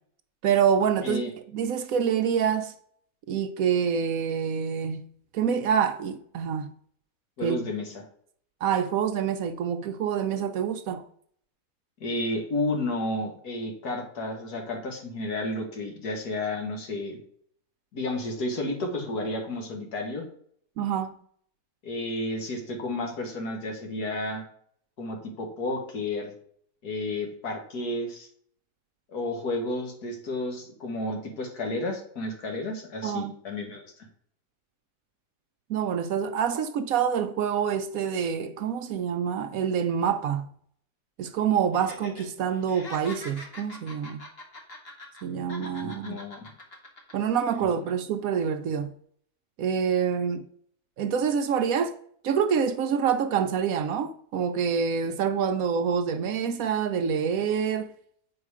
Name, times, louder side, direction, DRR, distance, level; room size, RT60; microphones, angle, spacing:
voice 1, 0.4-1.2 1.5-2.7 3.3-5.1 5.3-6.7 7.4-7.7 8.6-11.1 20.8-21.2 33.0-33.3 35.7-40.5 41.2-44.2 45.2-46.2 47.1-48.9 49.6-50.5 51.0-51.9 52.2-57.9, right 7 dB, 70° right, 0.9 m, -26 dB
voice 2, 7.4-7.9 12.0-17.2 17.9-20.2 21.8-24.4 25.0-26.3 26.8-28.3 29.1-33.9 45.8-46.5, left 2 dB, 75° left, 2.0 m, -32 dB
Laughter, 41.7-42.2 42.5-45.2 45.5-47.1 47.5-47.6, left 2 dB, 40° left, 1.6 m, -43 dB
7.8 x 4.9 x 4.8 m
omnidirectional pair, 1.7 m